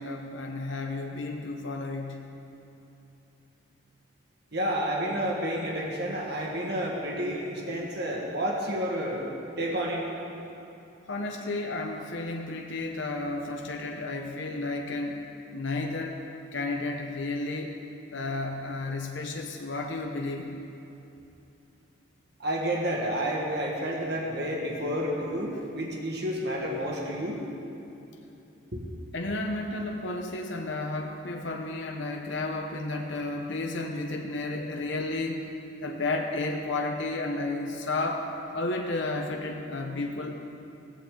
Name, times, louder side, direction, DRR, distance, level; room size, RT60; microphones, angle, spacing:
voice 1, 0.0-2.2 11.1-15.2 15.5-16.2 16.5-17.7 18.1-20.6 29.1-35.4 35.8-38.3 38.5-40.4, left 2 dB, 65° left, 2 dB, 0.9 m, -32 dB
voice 2, 4.5-9.2 9.6-10.0 22.4-27.4 28.7-28.8, equal, 55° right, -2 dB, 1.7 m, -30 dB
15.5 x 15.0 x 3.9 m, 2.8 s
head